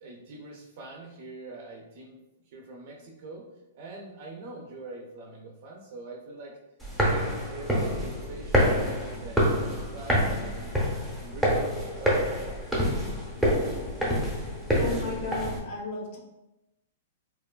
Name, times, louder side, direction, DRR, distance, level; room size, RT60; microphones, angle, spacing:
voice 1, 0.0-2.2 2.5-3.4 3.7-6.6 7.1-8.8 9.2-11.7 12.0-12.4, right 2 dB, 55° right, -1 dB, 0.5 m, -43 dB
sound 1, 6.8-15.6, equal, ahead, 0.7 m, -27 dB
voice 2, 14.7-16.2, left 2 dB, 50° left, -1 dB, 0.5 m, -34 dB
2.9 x 2.2 x 2.2 m, 0.92 s
hypercardioid pair, 145°, 0 cm